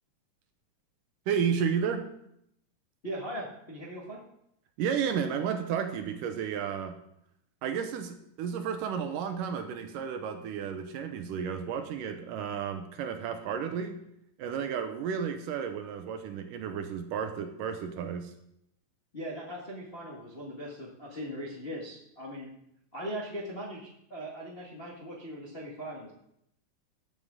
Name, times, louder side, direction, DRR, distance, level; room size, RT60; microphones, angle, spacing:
voice 1, 1.3-2.1 4.8-7.0 7.6-14.0 14.4-18.3, right 7 dB, 75° right, 7 dB, 2.3 m, -32 dB
voice 2, 3.0-4.2 19.1-22.5 22.9-26.1, equal, 40° left, -4 dB, 0.8 m, -39 dB
14.0 x 8.0 x 3.6 m, 0.76 s
omnidirectional pair, 4.1 m